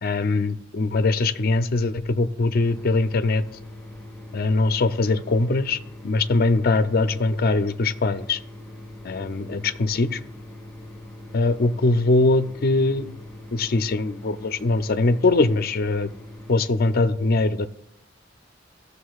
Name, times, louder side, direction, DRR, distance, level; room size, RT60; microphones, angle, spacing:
voice 1, 0.0-3.4 4.3-8.4 9.0-10.2 11.3-13.1 13.5-16.1 16.5-17.7, left 3 dB, 55° left, 10 dB, 0.5 m, -22 dB
sound 1, 2.5-16.5, left 1 dB, 5° left, 2.5 m, -41 dB
15.0 x 6.7 x 2.4 m, 0.71 s
head